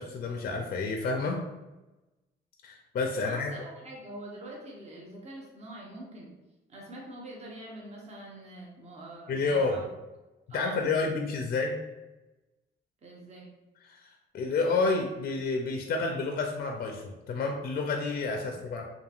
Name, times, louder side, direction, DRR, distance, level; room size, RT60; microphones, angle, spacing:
voice 1, 0.0-1.4 2.6-3.6 9.3-9.8 10.5-11.8 13.8-14.1 14.3-18.8, left 3 dB, 50° left, 2 dB, 0.4 m, -29 dB
voice 2, 3.2-6.3 6.7-9.8 10.5-11.1 13.0-13.5 18.4-18.5, right 1 dB, 35° right, -2 dB, 0.7 m, -44 dB
2.8 x 2.5 x 2.4 m, 1.1 s
cardioid pair, 90°, 20 cm